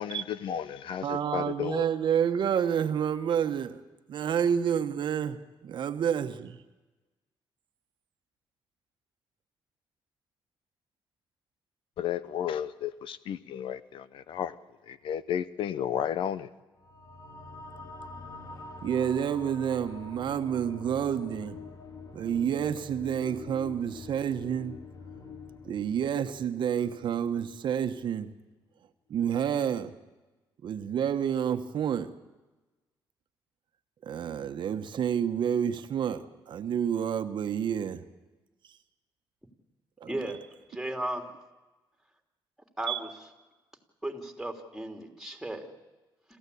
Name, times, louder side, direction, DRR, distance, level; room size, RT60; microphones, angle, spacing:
voice 1, 0.0-1.9 12.0-14.5 14.9-16.5, left 9 dB, 80° left, 0.9 m, -33 dB
voice 2, 1.0-3.8 4.1-6.6 18.8-21.6 22.1-24.8 25.6-28.3 29.1-29.9 30.6-32.1 34.0-38.0 40.0-40.1 42.9-43.0, right 8 dB, 65° right, 1.3 m, -29 dB
sound 1, 16.8-27.7, left 3 dB, 45° left, 2.4 m, -46 dB
voice 3, 40.0-40.4 40.7-41.3 42.8-43.1 44.0-45.7, right 1 dB, 5° right, 3.3 m, -35 dB
27.0 x 15.0 x 8.5 m
cardioid pair, 100°, 9 cm